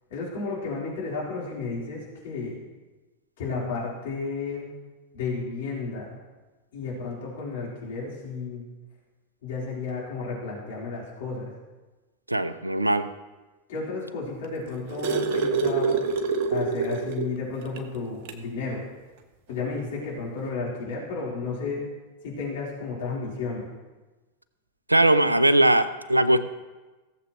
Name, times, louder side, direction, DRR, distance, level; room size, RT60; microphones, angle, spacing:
voice 1, 0.1-2.6 3.4-4.7 5.1-6.1 6.7-8.6 9.4-11.5 13.7-16.0 16.5-18.8 19.5-21.8 22.2-23.7, left 4 dB, 55° left, -5 dB, 4.0 m, -32 dB
voice 2, 12.3-13.1 24.9-26.4, right 1 dB, 85° right, 13 dB, 0.6 m, -20 dB
sound 1, 14.4-17.4 17.8-17.9 18.2-18.5 19.6-19.7, right 4 dB, 50° right, 1.2 m, -26 dB
17.5 x 7.5 x 3.1 m, 1.2 s
figure-of-eight pair, 90°, 0 cm